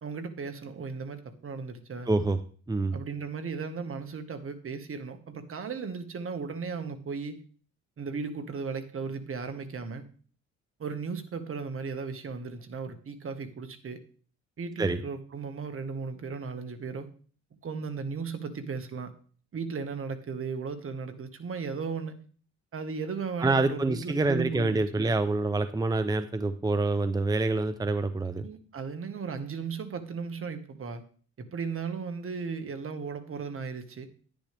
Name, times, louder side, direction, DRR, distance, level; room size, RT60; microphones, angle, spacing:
voice 1, 0.0-2.1 2.9-7.4 8.0-10.0 10.8-14.0 14.6-17.1 17.6-19.1 19.5-22.2 22.7-25.1 28.4-31.0 31.4-34.1, right 5 dB, 45° right, 8 dB, 1.7 m, -36 dB
voice 2, 2.1-2.4 2.7-3.0 14.8-15.0 23.4-28.4, right 3 dB, 15° right, 10 dB, 0.7 m, -26 dB
11.5 x 10.5 x 3.5 m, 0.43 s
cardioid pair, 90°, 30 cm